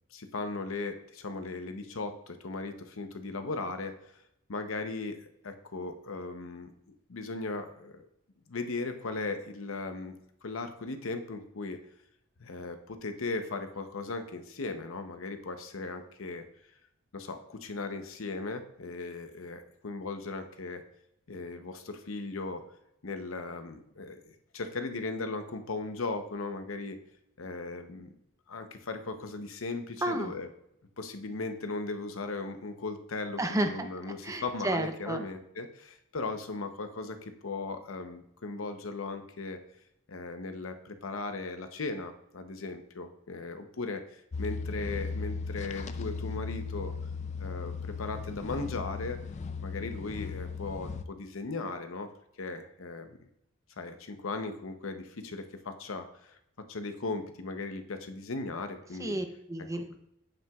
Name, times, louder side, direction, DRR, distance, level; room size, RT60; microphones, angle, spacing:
voice 1, 0.1-3.9 4.5-8.1 8.5-10.2 10.4-11.8 12.4-16.5 17.1-20.8 21.3-22.6 23.0-27.0 27.4-28.1 28.5-30.5 31.0-39.6 40.1-46.9 47.4-49.2 49.6-52.1 52.4-53.2 53.8-56.4 56.7-59.2, left 3 dB, 75° left, 7 dB, 0.8 m, -37 dB
voice 2, 30.0-30.3 33.4-35.2 59.0-60.0, right 1 dB, 15° right, 7 dB, 0.5 m, -32 dB
sound 1, 44.3-51.0, left 4 dB, 35° left, 0.3 m, -37 dB
8.7 x 7.6 x 2.3 m, 0.78 s
head